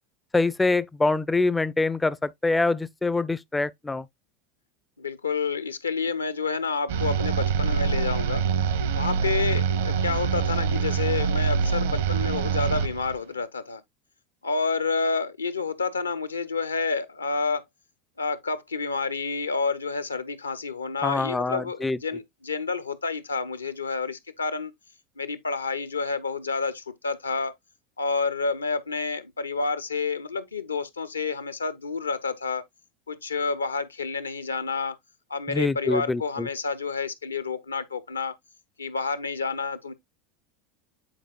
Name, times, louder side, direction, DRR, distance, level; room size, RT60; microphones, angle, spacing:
voice 1, 0.3-4.1 21.0-22.0 35.5-36.5, left 3 dB, 10° left, 0.3 m, -25 dB
voice 2, 5.0-8.4 8.9-13.8 14.4-17.6 18.2-24.7 25.2-27.5 28.0-32.6 33.1-35.0 35.3-38.3 38.8-39.9, left 4 dB, 80° left, 0.7 m, -29 dB
sound 1, 6.9-13.2, right 6 dB, 65° right, 0.8 m, -25 dB
8.8 x 4.5 x 2.3 m
figure-of-eight pair, 75°, 0 cm